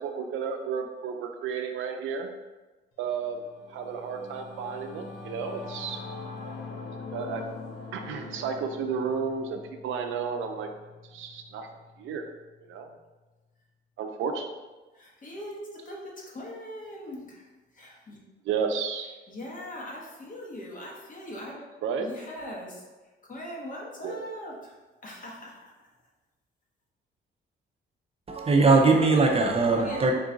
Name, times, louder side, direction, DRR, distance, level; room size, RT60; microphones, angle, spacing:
voice 1, 0.0-2.3 3.0-3.4 3.7-6.0 7.1-7.4 7.9-10.7 11.1-11.7 12.0-12.3 12.6-12.9 14.0-14.5 18.4-19.1 21.8-22.1 24.0-24.2, right 6 dB, 80° right, 0.5 m, -32 dB
Singing / Musical instrument, 3.1-12.8, left 4 dB, 80° left, 0.6 m, -43 dB
voice 2, 14.9-17.4 17.7-18.2 19.3-21.7 22.0-22.8 23.3-24.7 25.0-25.7 29.8-30.1, left 1 dB, 40° left, 1.1 m, -40 dB
voice 3, 28.3-30.1, right 3 dB, 30° right, 0.5 m, -20 dB
3.8 x 2.4 x 3.8 m
cardioid pair, 90°, 20 cm